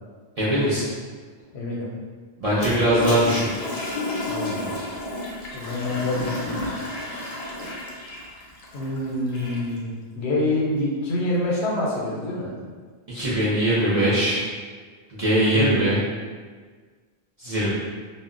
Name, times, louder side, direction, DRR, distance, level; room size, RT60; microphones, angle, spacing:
voice 1, 0.4-0.9 2.4-3.5 13.1-14.4 15.1-16.0 17.4-17.7, right 1 dB, 45° right, -9 dB, 0.5 m, -21 dB
voice 2, 1.5-1.9 4.3-4.8 5.5-6.6 8.7-12.5 15.4-16.1, left 1 dB, 80° left, -4 dB, 0.8 m, -26 dB
Toilet flush, 2.5-9.8, left 2 dB, 50° left, 0.5 m, -32 dB
2.1 x 2.0 x 3.6 m, 1.5 s
omnidirectional pair, 1.1 m